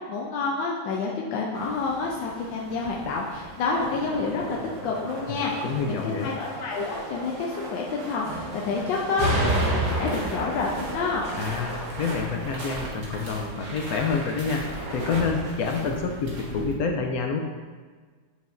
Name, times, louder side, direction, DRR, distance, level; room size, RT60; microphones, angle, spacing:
voice 1, 0.1-4.6 4.8-11.2, left 4 dB, 90° left, -2 dB, 1.4 m, -29 dB
sound 1, 1.5-15.2, right 1 dB, 70° right, 1.7 m, -34 dB
sound 2, 3.6-13.5 14.7-15.6, right 1 dB, 90° right, 1.8 m, -40 dB
voice 2, 5.3-6.3 11.3-14.6 14.9-17.4, left 5 dB, 75° left, 2 dB, 0.9 m, -28 dB
sound 3, 9.1-16.8, right 1 dB, 45° right, 1.4 m, -39 dB
8.1 x 4.9 x 2.5 m, 1.5 s
omnidirectional pair, 2.0 m